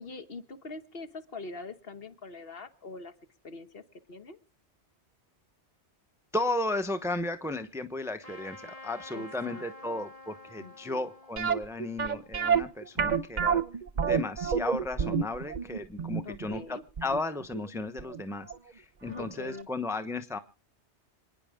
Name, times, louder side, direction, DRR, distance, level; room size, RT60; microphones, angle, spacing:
voice 1, 0.0-3.1 3.4-3.8 4.1-4.4 9.1-10.1 10.6-11.1 16.2-16.8 19.1-19.7, left 3 dB, 60° left, 9 dB, 1.4 m, -43 dB
voice 2, 6.3-13.6 14.0-20.4, left 2 dB, 5° right, 9 dB, 0.8 m, -34 dB
Trumpet, 8.2-13.3, left 2 dB, 35° left, 2.4 m, -50 dB
sound 1, 11.4-18.2 18.5-18.6 19.2-19.3 19.6-19.7, right 6 dB, 45° right, 0.8 m, -29 dB
27.0 x 9.9 x 3.7 m, 0.36 s
omnidirectional pair, 1.2 m